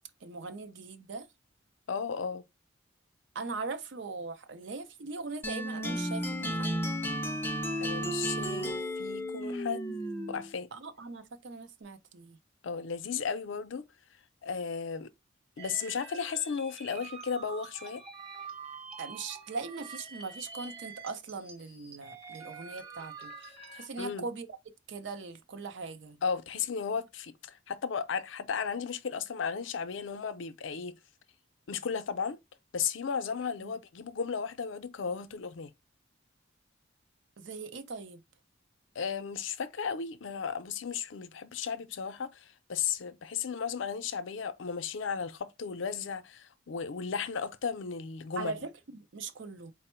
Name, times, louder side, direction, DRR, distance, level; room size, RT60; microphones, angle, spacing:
voice 1, 0.2-1.3 3.3-6.8 8.6-8.7 10.7-12.4 19.0-24.5 24.9-26.2 33.6-33.7 37.4-38.2 48.4-49.7, right 4 dB, 65° right, 0.6 m, -40 dB
voice 2, 1.9-2.4 7.8-9.9 10.3-10.7 12.6-13.8 14.4-15.1 15.6-18.0 24.0-24.3 26.2-30.9 31.7-32.4 32.7-35.7 39.0-48.5, left 6 dB, 75° left, 0.5 m, -35 dB
sound 1, 5.4-10.5, equal, 10° left, 0.4 m, -33 dB
sound 2, 15.6-23.9, right 5 dB, 30° right, 1.0 m, -46 dB
4.3 x 2.0 x 4.3 m
head